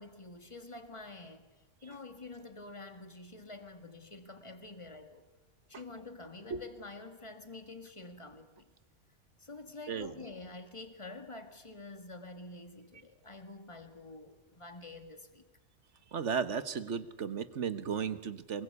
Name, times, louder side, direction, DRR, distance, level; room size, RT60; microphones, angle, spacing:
voice 1, 0.0-5.2 5.7-8.7 9.4-15.4, left 2 dB, 25° left, 2.1 m, -48 dB
voice 2, 16.1-18.6, right 6 dB, 70° right, 1.5 m, -35 dB
24.0 x 21.5 x 8.2 m
omnidirectional pair, 1.3 m